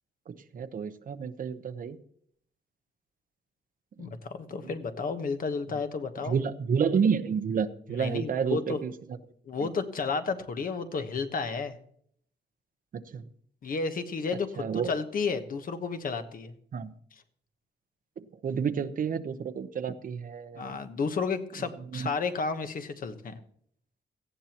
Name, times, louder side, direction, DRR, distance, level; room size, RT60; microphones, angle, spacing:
voice 1, 0.3-2.0 4.0-4.1 6.3-8.9 9.6-9.7 12.9-13.2 14.6-14.9 16.7-16.9 18.4-20.8 21.9-22.1, right 6 dB, 50° right, 9 dB, 0.9 m, -30 dB
voice 2, 4.0-6.4 7.9-8.8 9.5-11.8 13.6-16.5 20.6-23.4, left 4 dB, 50° left, 8 dB, 1.2 m, -32 dB
18.0 x 14.5 x 3.0 m, 0.64 s
wide cardioid pair, 160°, 18 cm